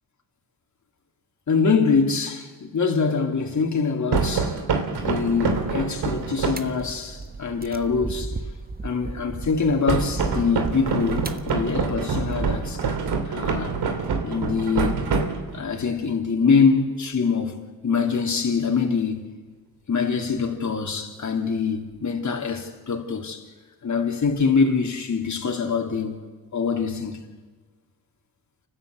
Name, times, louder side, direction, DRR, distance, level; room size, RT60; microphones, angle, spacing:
voice 1, 1.5-4.5 5.0-8.3 8.8-12.8 13.3-13.7 14.2-15.0 15.5-19.3 19.9-23.4 23.8-26.1 26.5-27.3, left 5 dB, 40° left, 3.0 m, -24 dB
sound 1, 4.1-6.8 9.9-15.8, right 5 dB, 65° right, 2.8 m, -26 dB
sound 2, 4.9-12.8, right 3 dB, 20° right, 1.3 m, -35 dB
29.5 x 12.5 x 8.4 m
supercardioid pair, 70°, 42 cm